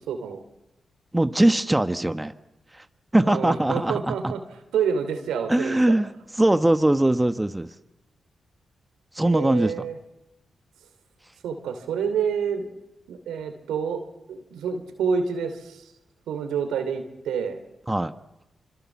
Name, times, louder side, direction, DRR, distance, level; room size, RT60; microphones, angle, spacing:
voice 1, 0.1-0.4 3.2-4.4 4.7-5.9 9.2-10.0 11.4-12.7 13.1-14.0 14.3-15.9 16.3-17.6, right 6 dB, 90° right, 8 dB, 2.8 m, -28 dB
voice 2, 1.1-2.3 2.7-2.8 3.1-4.3 5.5-6.1 6.4-7.7 9.1-9.7 17.9-18.1, right 1 dB, 15° right, 10 dB, 1.3 m, -21 dB
26.5 x 25.5 x 7.3 m, 0.99 s
supercardioid pair, 50°, 0 cm